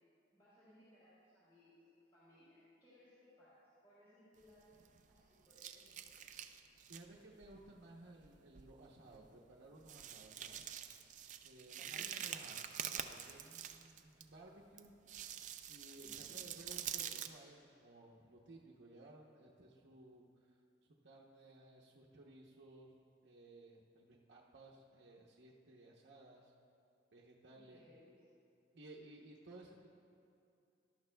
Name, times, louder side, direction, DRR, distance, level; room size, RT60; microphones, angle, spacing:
voice 1, 0.3-1.8 2.1-6.4 11.4-12.3 16.0-16.4 27.5-28.1, left 1 dB, 20° left, -12 dB, 2.9 m, -65 dB
sound 1, 4.4-5.2 5.5-7.1 7.4-7.6 8.2-8.3 8.5-8.7 9.1-9.2 9.8-14.2 14.8-17.3, right 9 dB, 40° right, 0.4 m, -46 dB
voice 2, 6.9-10.6 11.4-12.6 12.9-14.9 15.7-20.2 21.0-26.5 27.1-27.8 28.7-29.9, right 2 dB, 80° right, -3 dB, 0.9 m, -58 dB
17.5 x 12.0 x 2.3 m, 2.5 s
head